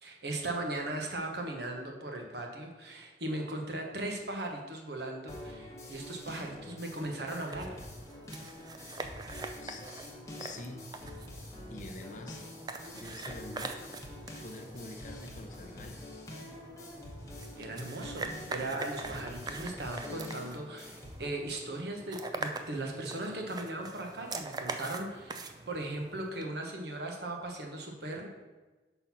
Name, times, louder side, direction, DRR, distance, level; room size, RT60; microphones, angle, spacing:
voice 1, 0.0-7.8 17.6-28.3, right 2 dB, 65° right, 2 dB, 1.1 m, -38 dB
sound 1, 5.3-21.3, left 1 dB, 15° left, 1.0 m, -46 dB
sound 2, 6.6-26.5, right 3 dB, 20° right, 0.4 m, -44 dB
voice 2, 10.4-10.9 11.7-12.4 12.9-14.0 14.4-16.1, left 2 dB, 45° left, 4 dB, 0.6 m, -45 dB
5.9 x 3.9 x 5.6 m, 1.2 s
head